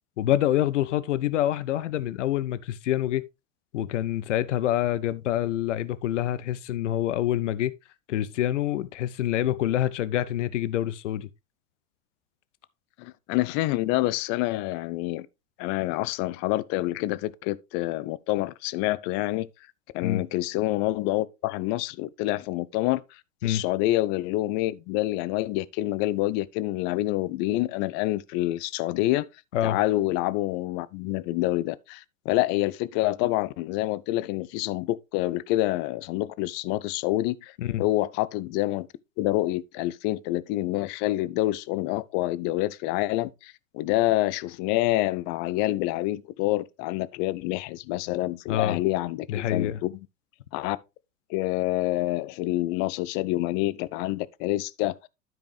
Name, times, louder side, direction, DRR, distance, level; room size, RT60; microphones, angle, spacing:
voice 1, 0.2-3.2 3.7-7.7 8.1-11.3 20.0-20.2 23.4-23.6 29.5-29.8 37.6-37.8 48.5-48.8 49.3-49.8, left 12 dB, 65° left, 0.7 m, -26 dB
voice 2, 13.0-15.3 15.6-19.5 19.9-23.0 23.4-29.3 29.6-37.5 37.8-38.9 39.2-49.9 50.5-50.8 51.3-55.0, left 17 dB, 30° left, 0.4 m, -27 dB
12.5 x 5.1 x 3.2 m
figure-of-eight pair, 90°, 39 cm